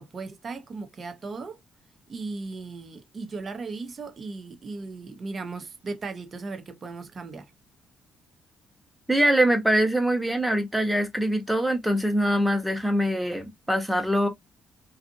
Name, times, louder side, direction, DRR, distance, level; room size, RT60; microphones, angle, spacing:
voice 1, 0.0-1.6 2.1-7.5, right 3 dB, 45° right, 0.7 m, -37 dB
voice 2, 9.1-14.3, right 1 dB, 5° right, 0.9 m, -23 dB
2.6 x 2.4 x 2.5 m
cardioid pair, 90°, 0 cm